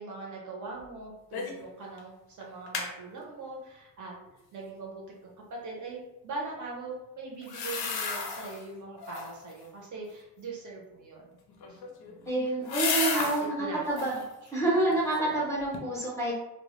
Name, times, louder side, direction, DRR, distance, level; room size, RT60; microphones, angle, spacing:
voice 1, 0.0-4.2 4.5-11.3 11.7-11.8 12.1-12.3 13.1-13.3 13.6-13.9 14.4-14.5, right 3 dB, 50° right, -2 dB, 0.6 m, -41 dB
sound 1, 1.3-1.7 2.0-2.1 2.4-2.9 7.4-8.6 9.0-9.5 11.5-13.4 13.8-14.3 14.8-15.4 15.7-15.8, left 5 dB, 90° left, 0.5 m, -33 dB
voice 2, 12.3-14.1 14.5-16.3, right 2 dB, 10° left, -7 dB, 0.5 m, -28 dB
2.1 x 2.1 x 2.9 m, 0.93 s
wide cardioid pair, 180°, 37 cm